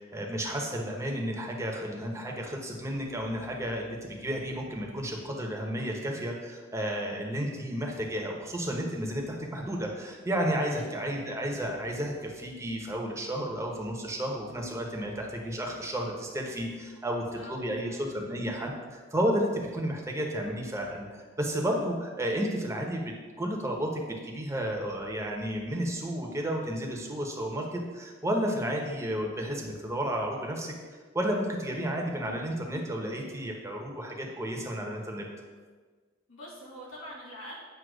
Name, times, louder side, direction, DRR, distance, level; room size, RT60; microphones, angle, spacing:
voice 1, 0.0-30.7 31.1-35.2, equal, 15° right, 0 dB, 0.9 m, -32 dB
voice 2, 10.7-11.2 17.3-18.1 36.3-37.6, equal, 90° left, -5 dB, 2.1 m, -46 dB
7.8 x 2.9 x 6.1 m, 1.4 s
head